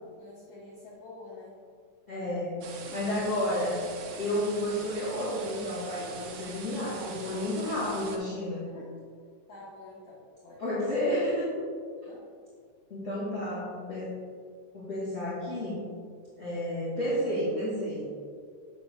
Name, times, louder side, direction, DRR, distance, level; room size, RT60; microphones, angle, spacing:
voice 1, 0.2-1.5 6.9-7.2 8.7-8.9 9.5-11.0 12.0-12.3, left 2 dB, 65° left, -7 dB, 1.9 m, -48 dB
voice 2, 2.1-3.8 4.2-8.7 10.6-11.6 12.9-14.1 14.7-15.8 16.4-18.0, left 1 dB, 30° left, -10 dB, 1.9 m, -31 dB
sound 1, 2.6-8.2, right 5 dB, 75° right, 1.5 m, -43 dB
8.5 x 7.6 x 2.3 m, 2.1 s
omnidirectional pair, 3.5 m